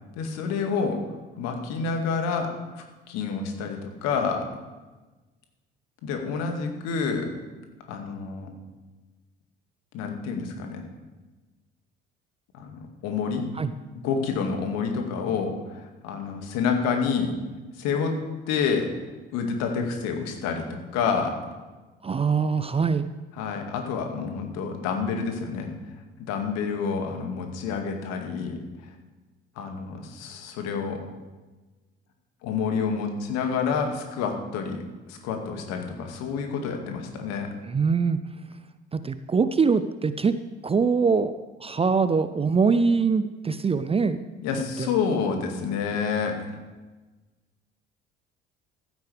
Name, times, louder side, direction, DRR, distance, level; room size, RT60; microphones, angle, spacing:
voice 1, 0.2-4.5 6.0-7.3 7.9-8.5 9.9-10.8 12.5-13.4 14.0-17.4 17.8-18.2 18.5-18.9 19.3-21.4 23.4-26.0 26.3-28.6 29.6-31.0 32.4-34.8 35.1-37.5 44.4-46.6, left 5 dB, 60° left, 4 dB, 2.2 m, -28 dB
voice 2, 22.0-23.1 37.7-38.2 38.9-40.4 40.6-41.3 41.6-44.2 44.8-44.9, right 5 dB, 20° right, 12 dB, 0.6 m, -23 dB
15.0 x 12.5 x 3.5 m, 1.2 s
figure-of-eight pair, 55°, 30 cm